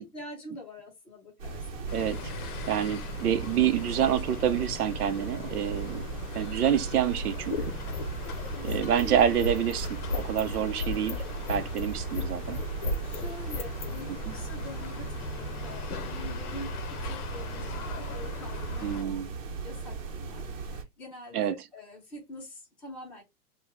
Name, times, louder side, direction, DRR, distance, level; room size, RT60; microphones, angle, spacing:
voice 1, 0.0-1.9 5.8-6.0 8.5-9.3 9.8-9.9 10.5-10.6 11.7-11.8 12.5-12.7 13.0-19.2 19.6-23.2, left 1 dB, 5° left, 0.7 m, -45 dB
sound 1, 1.4-20.8, right 4 dB, 55° right, 1.1 m, -37 dB
sound 2, 1.9-19.0, left 6 dB, 70° left, 0.7 m, -41 dB
voice 2, 1.9-2.3 2.7-6.0 6.3-7.7 8.6-12.6 18.8-19.3 21.3-21.5, right 9 dB, 75° right, 0.8 m, -27 dB
sound 3, 7.1-14.0, left 3 dB, 35° left, 0.4 m, -34 dB
2.9 x 2.4 x 3.5 m
hypercardioid pair, 165°, 45 cm